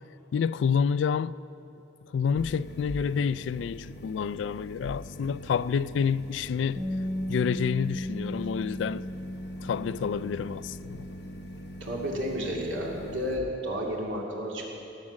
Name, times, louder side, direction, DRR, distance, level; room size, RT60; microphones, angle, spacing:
voice 1, 0.3-1.4 2.1-6.8 7.3-9.1 9.6-11.1, left 6 dB, 75° left, 0.3 m, -28 dB
sound 1, 2.4-13.4, equal, 60° left, 1.1 m, -44 dB
Bass guitar, 6.8-13.0, equal, 35° right, 2.9 m, -37 dB
voice 2, 11.8-14.8, equal, 85° right, 2.6 m, -32 dB
17.5 x 7.4 x 7.2 m
head